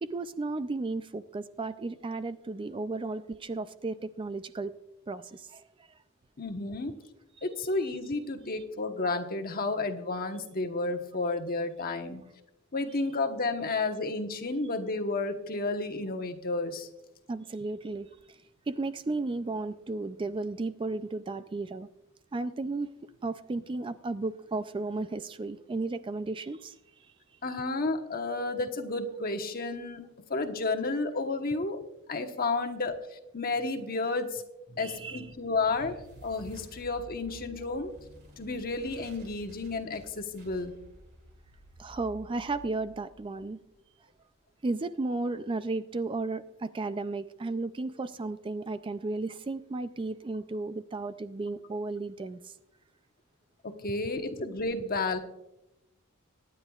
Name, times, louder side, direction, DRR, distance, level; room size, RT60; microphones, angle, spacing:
voice 1, 0.0-4.7 5.1-5.6 8.5-8.6 17.3-18.1 18.7-21.9 22.3-22.9 23.2-26.7 34.7-35.4 41.8-43.6 44.6-52.5, right 3 dB, 25° right, 12 dB, 0.4 m, -34 dB
voice 2, 6.4-6.9 7.4-12.2 12.7-16.9 27.4-30.0 30.3-31.8 32.1-33.0 33.3-34.4 34.8-35.9 36.2-37.9 38.4-40.7 53.6-55.2, left 3 dB, 45° left, 5 dB, 1.1 m, -31 dB
sound 1, 34.9-44.0, equal, 50° right, 2.2 m, -52 dB
24.0 x 10.0 x 2.4 m, 0.89 s
head